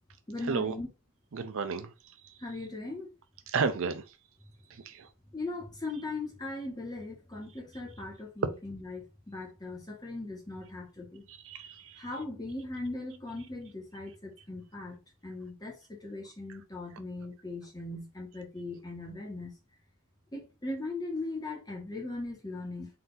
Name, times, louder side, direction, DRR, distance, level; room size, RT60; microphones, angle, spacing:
voice 1, 0.3-0.9 2.4-3.1 5.3-11.2 12.0-15.0 15.2-19.5 20.3-22.9, left 2 dB, 15° left, 1.2 m, -39 dB
voice 2, 1.3-1.9 2.2-2.3 3.5-4.0 4.7-5.1 11.3-12.1 16.5-16.6, right 5 dB, 60° right, 0.5 m, -33 dB
4.0 x 2.7 x 3.8 m
head